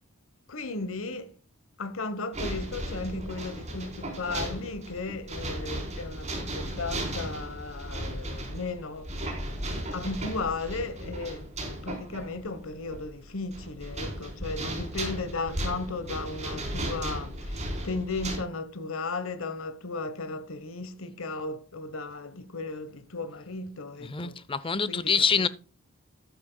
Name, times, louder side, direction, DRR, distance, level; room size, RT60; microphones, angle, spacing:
voice 1, 0.5-1.3 1.8-9.4 9.7-24.4 24.9-25.1, left 3 dB, 80° left, 1.2 m, -35 dB
sound 1, 2.3-18.4, right 1 dB, 35° right, 4.1 m, -36 dB
voice 2, 24.0-25.5, left 6 dB, 25° left, 0.7 m, -26 dB
13.5 x 10.5 x 2.3 m
head